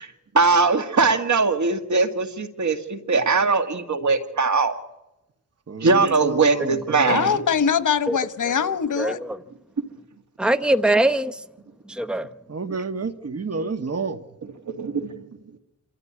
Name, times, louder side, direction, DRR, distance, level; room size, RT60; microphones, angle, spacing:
voice 1, 0.3-4.7 5.8-7.3 14.7-15.1, right 4 dB, 70° right, 2.1 m, -20 dB
voice 2, 5.7-7.4 12.5-14.2, right 4 dB, 55° right, 1.6 m, -30 dB
voice 3, 7.1-9.2, left 7 dB, 85° left, 1.2 m, -22 dB
voice 4, 9.0-9.4 10.4-11.4 11.9-12.3, right 1 dB, 5° right, 0.9 m, -22 dB
27.0 x 13.5 x 9.8 m
wide cardioid pair, 90°, 30 cm